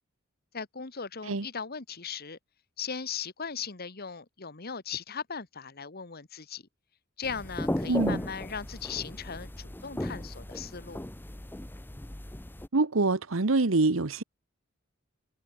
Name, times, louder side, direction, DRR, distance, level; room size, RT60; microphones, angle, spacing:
voice 1, 0.5-2.4 2.8-6.7 7.2-11.0, left 6 dB, 50° left, 1.5 m, -38 dB
sound 1, 7.2-12.7, left 1 dB, 10° left, 0.8 m, -36 dB
voice 2, 7.9-8.2 12.7-14.2, right 3 dB, 75° right, 1.1 m, -25 dB
head